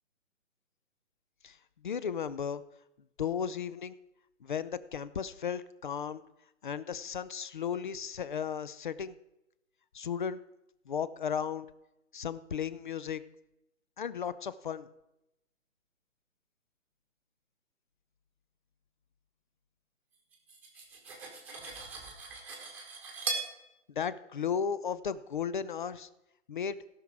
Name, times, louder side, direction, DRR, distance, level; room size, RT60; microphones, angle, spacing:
voice 1, 1.8-2.6 3.2-3.9 4.4-6.2 6.6-9.1 9.9-10.4 10.9-11.7 12.1-13.2 14.0-14.9 24.0-26.1 26.5-26.8, left 7 dB, 40° left, 16 dB, 0.4 m, -35 dB
Cutlery silverware, 20.3-23.5, right 4 dB, 5° right, 1.2 m, -39 dB
17.0 x 6.1 x 4.7 m, 0.90 s
hypercardioid pair, 155°, 39 cm